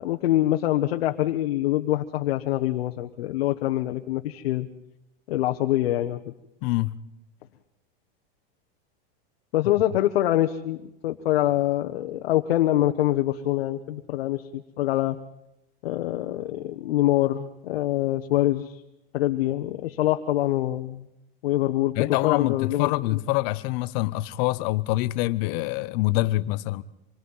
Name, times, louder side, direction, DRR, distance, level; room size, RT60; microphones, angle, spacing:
voice 1, 0.0-4.7 5.3-6.2 9.5-10.8 11.0-15.2 15.8-18.8 19.1-21.0 21.4-22.0 22.2-23.2, left 14 dB, 85° left, 1.1 m, -25 dB
voice 2, 6.6-6.9 22.0-26.8, left 18 dB, 45° left, 0.9 m, -25 dB
26.5 x 21.5 x 5.6 m
supercardioid pair, 160°, 29 cm